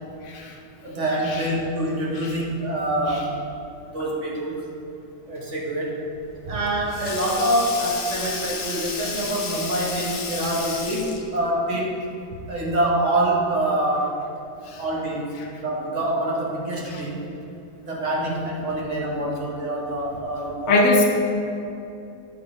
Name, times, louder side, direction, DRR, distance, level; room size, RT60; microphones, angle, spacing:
voice 1, 0.2-0.6 14.7-14.8 16.9-17.0 18.2-18.3 20.7-21.0, left 2 dB, 55° left, -1 dB, 1.3 m, -20 dB
voice 2, 0.8-3.3 3.9-4.6 5.3-6.0 6.4-12.0 12.5-14.2 14.8-17.2 17.9-20.8, right 1 dB, 45° right, -3 dB, 1.4 m, -25 dB
Sink (filling or washing), 6.2-11.4, left 4 dB, 75° left, 0.4 m, -32 dB
9.3 x 4.3 x 4.8 m, 2.7 s
omnidirectional pair, 1.9 m